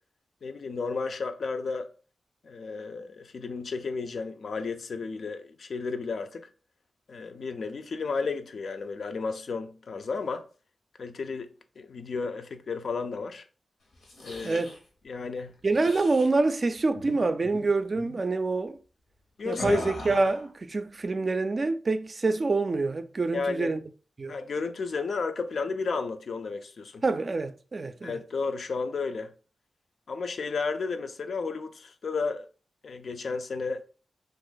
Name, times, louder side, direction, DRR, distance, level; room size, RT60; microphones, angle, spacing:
voice 1, 0.4-1.9 2.4-6.5 7.1-10.5 11.0-11.5 11.8-13.4 14.2-14.6 15.0-15.6 19.4-19.8 23.3-23.7 24.3-27.0 28.0-29.3 30.1-32.5 32.8-33.8, left 4 dB, 70° left, 0.4 m, -33 dB
sound 1, 13.9-14.8 15.7-16.3 16.9-17.2 17.4-17.6 17.9-18.2 19.5-20.5, left 2 dB, 90° left, 0.9 m, -39 dB
voice 2, 14.4-14.7 15.6-18.8 19.5-23.8 24.2-24.4 27.0-28.2, right 3 dB, 50° right, 0.4 m, -26 dB
2.6 x 2.4 x 3.8 m
cardioid pair, 50°, 0 cm